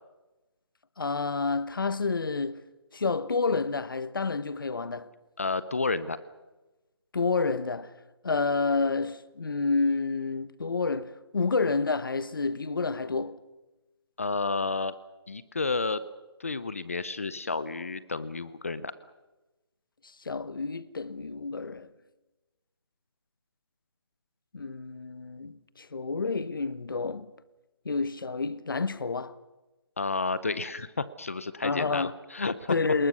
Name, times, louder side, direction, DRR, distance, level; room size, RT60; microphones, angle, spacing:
voice 1, 1.0-2.6 2.9-5.1 7.1-7.9 8.2-13.4 20.2-21.9 24.5-27.3 27.8-29.4 31.6-32.1 32.7-33.1, left 4 dB, 50° left, 1.2 m, -29 dB
voice 2, 5.4-6.2 14.2-14.9 15.3-16.0 16.4-18.9 30.0-32.8, left 3 dB, 30° left, 0.7 m, -31 dB
29.5 x 20.0 x 6.3 m
hypercardioid pair, 180°, 14 cm